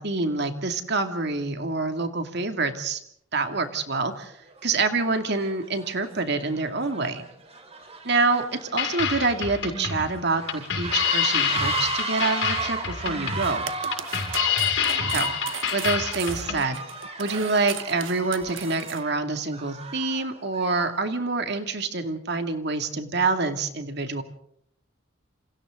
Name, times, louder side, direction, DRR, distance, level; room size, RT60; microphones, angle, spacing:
voice 1, 0.0-3.0 3.3-4.3 4.6-7.3 8.0-13.7 15.1-15.4 15.7-16.8 17.2-24.2, right 3 dB, 55° right, 7 dB, 2.4 m, -26 dB
sound 1, 3.7-3.8 4.5-4.7 5.1-21.0, right 4 dB, 30° right, 3.7 m, -35 dB
sound 2, 8.8-16.6, left 7 dB, 65° left, 6.1 m, -27 dB
sound 3, 13.2-19.0, right 8 dB, 70° right, 1.3 m, -37 dB
28.0 x 27.5 x 3.8 m, 0.67 s
head